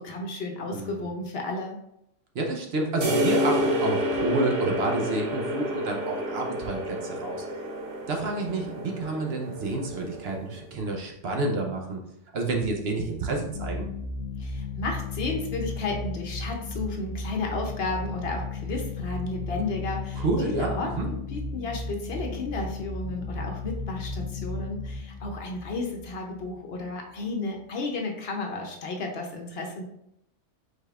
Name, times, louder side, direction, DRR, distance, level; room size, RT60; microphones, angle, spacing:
voice 1, 0.0-1.8 14.4-29.8, left 3 dB, 60° left, 2 dB, 0.9 m, -33 dB
voice 2, 0.7-1.0 2.3-7.4 8.1-12.0 12.3-13.9 20.1-21.1, right 2 dB, 60° right, 1 dB, 0.9 m, -29 dB
sound 1, 3.0-10.5, equal, 80° right, 1.3 m, -29 dB
sound 2, 13.5-26.8, left 3 dB, 85° left, 1.0 m, -35 dB
5.0 x 4.1 x 2.4 m, 0.79 s
omnidirectional pair, 1.3 m